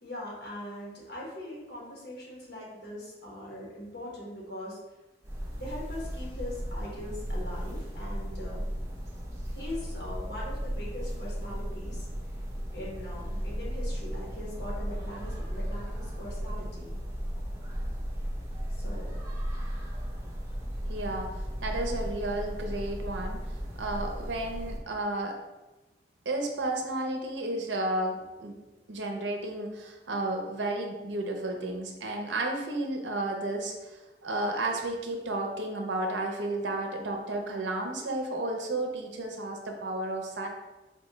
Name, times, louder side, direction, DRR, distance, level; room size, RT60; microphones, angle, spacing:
voice 1, 0.0-4.8 5.5-8.6 9.5-12.0 12.7-17.0 18.8-19.2, left 1 dB, 65° left, -4 dB, 1.3 m, -41 dB
sound 1, 5.2-24.8, equal, 15° right, 0.5 m, -35 dB
voice 2, 20.9-21.3 21.6-23.4 23.8-25.3 26.3-28.6 28.9-40.5, right 2 dB, 80° right, 2 dB, 0.6 m, -32 dB
4.2 x 2.3 x 3.0 m, 1.1 s
head